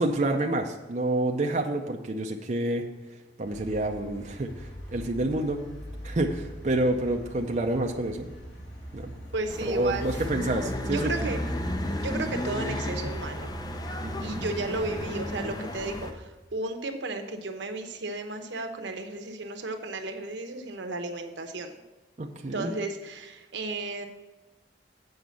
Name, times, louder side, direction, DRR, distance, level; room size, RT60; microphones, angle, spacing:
voice 1, 0.0-2.8 3.4-4.5 4.9-5.7 6.0-8.3 8.9-9.1 9.7-11.3 14.0-14.4 22.2-22.7, right 1 dB, 40° right, 2 dB, 0.6 m, -28 dB
sound 1, 3.4-16.1, equal, 70° left, 2.9 m, -40 dB
voice 2, 9.3-10.3 10.8-11.4 12.0-13.5 14.2-21.7 22.5-24.1, right 2 dB, 85° right, 6 dB, 0.9 m, -34 dB
sound 2, 9.5-16.1, left 1 dB, 20° left, 0.5 m, -34 dB
7.9 x 5.1 x 6.9 m, 1.1 s
head